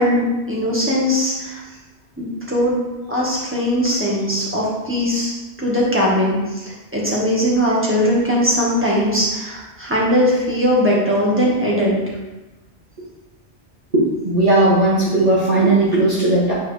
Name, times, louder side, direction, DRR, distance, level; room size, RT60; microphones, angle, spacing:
voice 1, 0.0-1.6 2.2-2.7 3.1-5.3 5.6-12.0, equal, 10° right, -6 dB, 1.8 m, -19 dB
voice 2, 13.9-16.5, right 2 dB, 35° right, -10 dB, 2.0 m, -16 dB
8.8 x 4.5 x 3.5 m, 1.1 s
omnidirectional pair, 1.1 m